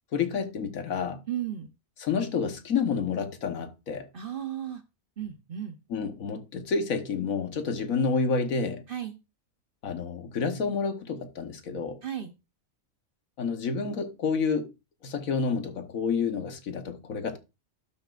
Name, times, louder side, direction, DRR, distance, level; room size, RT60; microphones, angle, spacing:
voice 1, 0.1-1.2 2.0-4.1 5.9-8.8 9.8-12.0 13.4-14.7 15.0-17.4, left 5 dB, 75° left, 1.6 m, -29 dB
voice 2, 1.3-1.7 4.1-4.8 5.2-5.8 8.9-9.2 12.0-12.3, right 10 dB, 45° right, 0.9 m, -34 dB
12.0 x 6.9 x 2.5 m
omnidirectional pair, 1.5 m